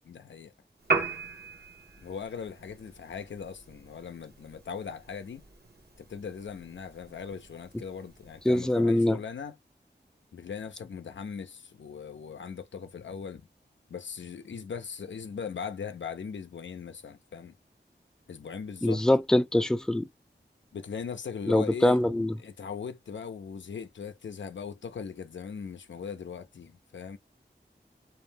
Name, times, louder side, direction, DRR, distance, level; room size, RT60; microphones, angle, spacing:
voice 1, 0.1-0.5 2.0-5.4 6.0-9.6 10.3-13.5 13.9-17.6 18.3-19.0 20.7-22.0 22.4-27.2, left 6 dB, 90° left, 0.4 m, -39 dB
Piano, 0.8-8.8, right 4 dB, 60° right, 0.8 m, -38 dB
voice 2, 8.5-9.2 18.8-20.1 21.5-22.3, left 1 dB, 5° left, 0.3 m, -23 dB
2.4 x 2.0 x 3.3 m
wide cardioid pair, 50°, 19 cm